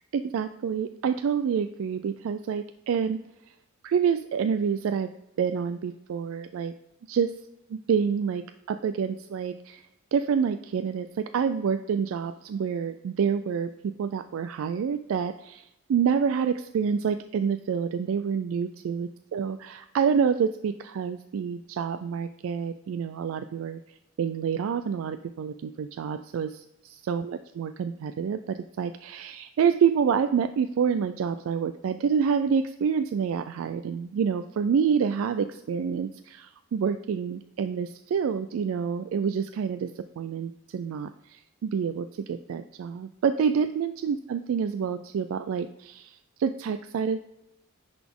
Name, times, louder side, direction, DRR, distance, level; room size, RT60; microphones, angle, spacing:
voice 1, 0.1-3.2 3.8-5.1 5.4-6.7 7.1-7.3 7.9-23.8 24.2-47.3, right 7 dB, 75° right, 10 dB, 0.3 m, -28 dB
10.5 x 4.1 x 3.6 m, 0.87 s
head